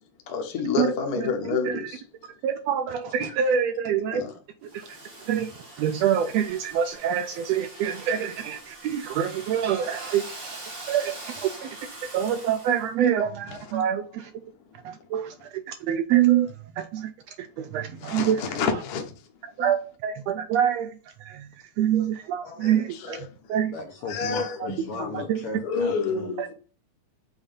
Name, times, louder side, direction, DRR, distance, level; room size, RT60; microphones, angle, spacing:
voice 1, 0.3-2.0 4.1-4.3 13.5-13.7 18.0-19.1 22.4-23.3 24.1-25.2 25.6-26.5, left 5 dB, 85° left, 0.8 m, -29 dB
voice 2, 2.4-4.2 4.7-5.0 5.3-5.5 5.8-10.6 10.9-11.7 12.1-14.3 14.8-17.1 17.4-18.4 19.6-20.9 21.2-21.5 21.8-23.2 23.5-23.7 25.1-25.4 26.4-26.5, right 9 dB, 80° right, 1.6 m, -26 dB
Domestic sounds home sounds, 4.7-12.9, right 2 dB, 30° right, 1.1 m, -42 dB
voice 3, 23.7-26.5, left 4 dB, 65° left, 1.6 m, -36 dB
7.2 x 2.6 x 5.1 m
omnidirectional pair, 3.4 m